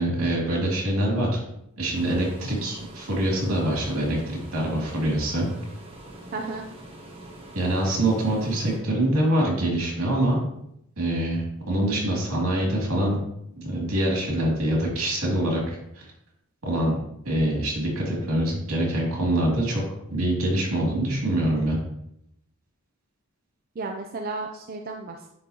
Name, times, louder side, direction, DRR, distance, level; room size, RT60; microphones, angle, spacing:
voice 1, 0.0-1.4 1.8-5.5 7.5-10.4 11.0-13.2 13.6-15.8 16.6-17.0 17.2-19.8 20.1-21.8, right 1 dB, 80° right, -3 dB, 2.5 m, -24 dB
sound 1, 1.9-8.8, right 1 dB, 25° right, 1.1 m, -44 dB
voice 2, 6.3-6.6 23.8-25.3, right 3 dB, 45° right, 2 dB, 0.4 m, -33 dB
9.9 x 3.7 x 2.9 m, 0.78 s
head